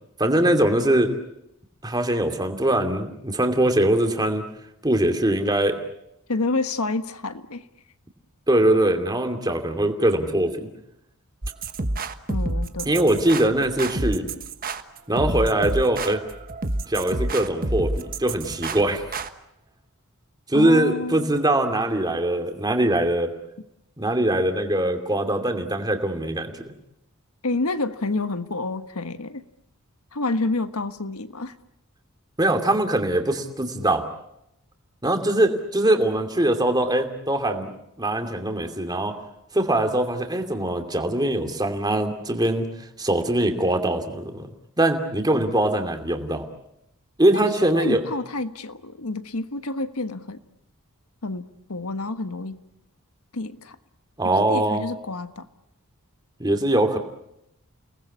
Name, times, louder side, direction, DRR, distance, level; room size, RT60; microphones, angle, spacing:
voice 1, 0.2-1.1 1.8-4.4 4.8-5.8 8.5-10.7 12.9-14.3 15.1-16.2 16.9-19.0 20.5-23.3 24.0-26.5 32.4-34.0 35.0-37.7 38.0-39.2 39.5-42.7 43.0-44.5 44.8-46.4 47.2-48.0 54.2-54.8 56.4-57.0, right 1 dB, 20° right, 5 dB, 2.7 m, -22 dB
voice 2, 6.3-7.7 12.3-12.9 20.5-21.4 27.4-29.4 30.1-31.5 47.3-50.4 51.2-51.4 51.7-52.6 53.3-53.8 54.2-55.5, left 2 dB, 85° left, 10 dB, 1.5 m, -29 dB
sound 1, 11.4-19.3, right 2 dB, 40° right, 1.3 m, -29 dB
30.0 x 19.5 x 8.6 m, 0.82 s
head